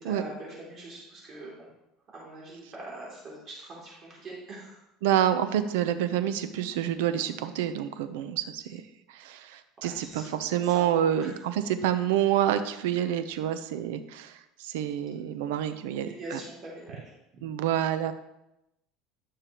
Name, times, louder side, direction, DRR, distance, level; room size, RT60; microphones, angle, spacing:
voice 1, 0.0-1.5 2.1-4.8 9.8-10.9 11.2-11.3 16.0-17.5, right 2 dB, 35° right, -5 dB, 2.9 m, -43 dB
voice 2, 5.0-8.8 9.1-16.4 17.4-18.1, right 10 dB, 90° right, 10 dB, 0.7 m, -28 dB
11.5 x 6.6 x 3.0 m, 0.88 s
cardioid pair, 135°, 0 cm